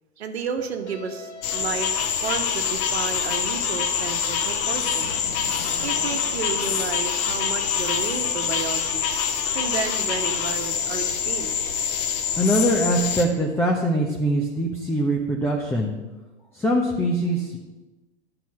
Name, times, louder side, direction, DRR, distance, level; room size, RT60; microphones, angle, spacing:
voice 1, 0.2-1.9 2.2-5.3 5.8-9.0 9.5-11.6, right 6 dB, 70° right, 6 dB, 1.3 m, -32 dB
sound 1, 0.6-6.8, left 3 dB, 85° left, 1.1 m, -42 dB
sound 2, 1.4-13.2, left 7 dB, 40° left, 1.2 m, -25 dB
voice 2, 12.4-15.9 16.5-17.6, equal, 5° left, -1 dB, 1.0 m, -22 dB
10.5 x 4.9 x 7.2 m, 1.1 s
figure-of-eight pair, 105°, 33 cm